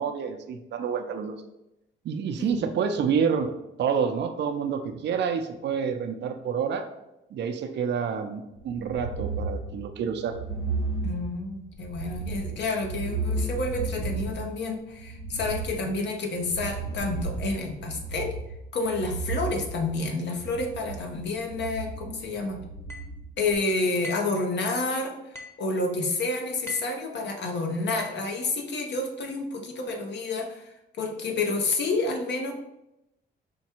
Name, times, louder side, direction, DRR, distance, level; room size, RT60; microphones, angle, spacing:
voice 1, 0.0-1.4 2.0-3.5 3.8-6.9 7.3-10.4, right 6 dB, 60° right, 7 dB, 0.5 m, -28 dB
sound 1, 8.6-23.6, right 3 dB, 85° left, 1.4 m, -34 dB
voice 2, 11.0-18.4 18.7-22.6 23.4-25.1 25.6-30.7 31.0-32.5, left 3 dB, 60° left, 3 dB, 0.9 m, -29 dB
sound 2, 22.9-23.1 24.0-24.4 25.4-25.7 26.7-27.0 28.0-28.3, left 2 dB, 15° left, 0.9 m, -41 dB
5.1 x 2.3 x 4.4 m, 0.88 s
cardioid pair, 90°, 20 cm